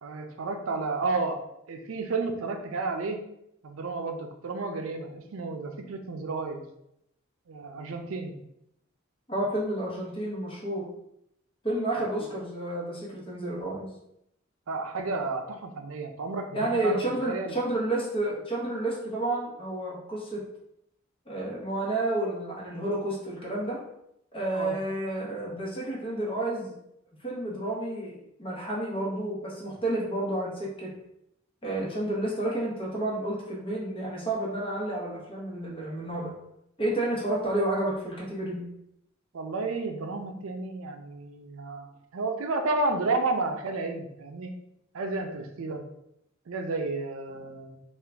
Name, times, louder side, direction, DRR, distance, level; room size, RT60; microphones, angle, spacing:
voice 1, 0.0-1.4 1.7-3.2 3.6-6.6 7.5-8.4 12.2-12.3 14.7-17.5 24.5-24.8 39.3-41.9 42.1-44.5 44.9-45.8 46.5-47.8, right 3 dB, 75° right, 5 dB, 0.5 m, -31 dB
voice 2, 9.3-10.9 11.6-13.9 16.5-20.4 21.3-23.8 24.3-26.7 27.2-30.9 31.6-36.3 36.8-38.7, right 1 dB, 25° left, -4 dB, 1.0 m, -30 dB
3.6 x 2.4 x 3.4 m, 0.78 s
head